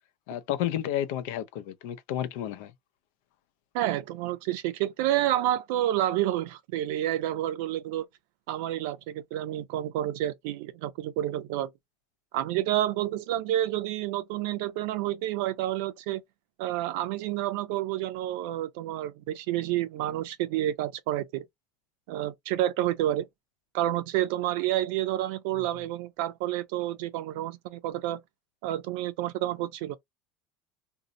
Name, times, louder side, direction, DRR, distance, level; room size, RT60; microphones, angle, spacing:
voice 1, 0.3-2.7, left 11 dB, 75° left, 0.6 m, -31 dB
voice 2, 3.7-8.1 8.5-11.7 12.3-16.2 16.6-21.4 22.1-23.3 23.7-28.2 28.6-29.9, right 13 dB, 75° right, 0.5 m, -29 dB
2.7 x 2.0 x 3.8 m
supercardioid pair, 140°, 0 cm